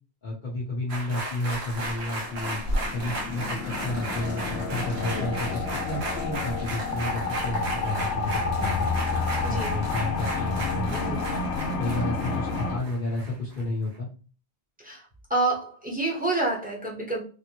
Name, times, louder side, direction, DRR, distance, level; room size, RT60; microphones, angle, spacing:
voice 1, 0.2-2.6 2.9-8.9 9.4-11.2 11.8-14.1, left 2 dB, 50° left, -7 dB, 1.1 m, -31 dB
sound 1, 0.9-13.6 13.9-14.0, right 1 dB, 75° right, 1.2 m, -35 dB
sound 2, 2.2-12.8, left 4 dB, 90° left, 0.9 m, -30 dB
voice 2, 9.4-9.7 14.8-15.0 15.3-17.2, right 2 dB, 10° right, -3 dB, 0.8 m, -27 dB
3.5 x 2.1 x 2.9 m, 0.38 s
omnidirectional pair, 1.1 m